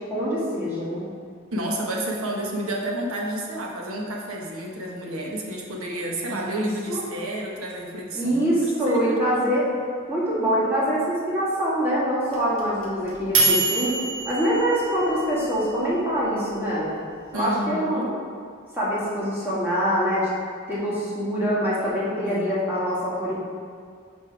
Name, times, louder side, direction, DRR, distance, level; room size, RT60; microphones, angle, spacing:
voice 1, 0.1-1.0 6.3-6.5 6.9-7.0 8.1-9.6 10.1-13.9 14.3-16.9 17.3-18.1 18.7-20.3 20.7-23.4, equal, 10° right, -9 dB, 1.8 m, -24 dB
voice 2, 1.5-9.6 17.3-18.2 22.2-22.9 23.1-23.2, right 1 dB, 85° right, -1 dB, 1.1 m, -31 dB
sound 1, 12.3-15.5, right 3 dB, 70° right, 1.2 m, -24 dB
5.5 x 5.2 x 4.8 m, 2.2 s
head